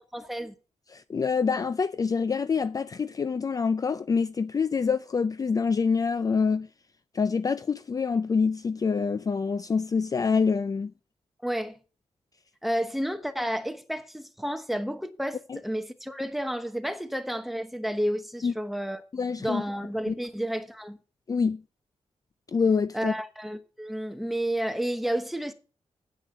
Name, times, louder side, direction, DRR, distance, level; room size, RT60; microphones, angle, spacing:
voice 1, 0.1-0.5 11.4-11.8 12.6-19.0 19.4-21.0 22.9-25.5, equal, ahead, 1.0 m, -31 dB
voice 2, 0.9-6.7 7.1-10.9 15.5-15.6 18.4-18.5 19.1-19.6 20.1-20.2 21.3-21.6 22.5-23.1, left 5 dB, 30° left, 0.4 m, -26 dB
9.8 x 8.6 x 5.1 m
wide cardioid pair, 150°, 12 cm